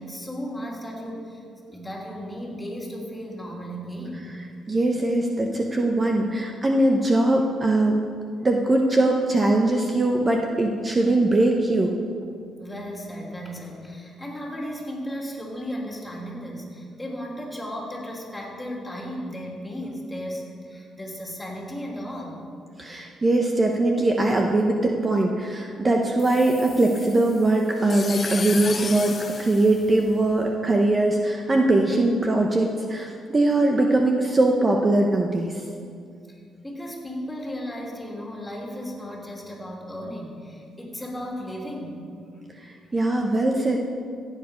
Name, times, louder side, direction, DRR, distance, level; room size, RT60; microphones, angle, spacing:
voice 1, 0.0-4.3 12.6-22.4 36.6-42.1, equal, 15° left, -2 dB, 3.0 m, -35 dB
voice 2, 4.7-8.0 8.4-11.9 22.8-35.5 42.6-43.8, right 2 dB, 25° right, 1 dB, 1.0 m, -21 dB
sound 1, 26.2-30.5, left 5 dB, 40° left, 0.6 m, -35 dB
15.5 x 8.2 x 5.2 m, 2.3 s
cardioid pair, 90°, 0 cm